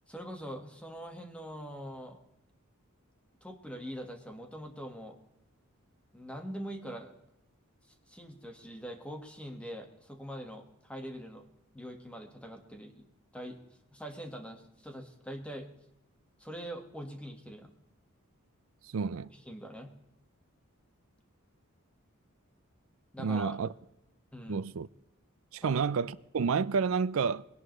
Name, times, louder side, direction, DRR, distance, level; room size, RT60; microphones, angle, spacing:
voice 1, 0.1-2.2 3.4-5.2 6.1-7.1 8.1-11.4 11.7-13.1 13.3-13.6 13.9-15.7 16.4-17.7 19.3-19.9 23.1-23.6 24.3-24.6 25.6-25.8, equal, 5° left, 1.6 m, -43 dB
voice 2, 18.9-19.3 23.2-23.7 24.5-24.9 25.5-27.4, right 5 dB, 65° right, 0.4 m, -30 dB
21.0 x 11.0 x 3.2 m
head